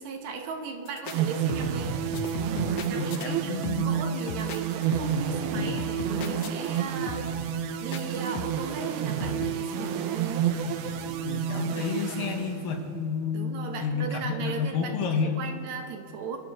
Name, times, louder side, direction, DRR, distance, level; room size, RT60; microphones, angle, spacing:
voice 1, 0.0-2.0 2.8-10.5 13.3-16.4, right 5 dB, 70° right, 4 dB, 2.2 m, -37 dB
sound 1, 0.9-1.2 1.5-1.9 2.1-3.3 3.6-4.0 4.3-5.3 5.6-6.8 7.1-7.4 7.9-8.7 9.2-9.5, left 9 dB, 85° left, 1.3 m, -37 dB
sound 2, 1.1-12.9, right 8 dB, 85° right, 2.3 m, -30 dB
voice 2, 2.9-4.0 7.0-7.1 11.2-15.4, left 6 dB, 60° left, 3 dB, 1.7 m, -30 dB
23.0 x 13.5 x 3.1 m, 2.9 s
omnidirectional pair, 3.5 m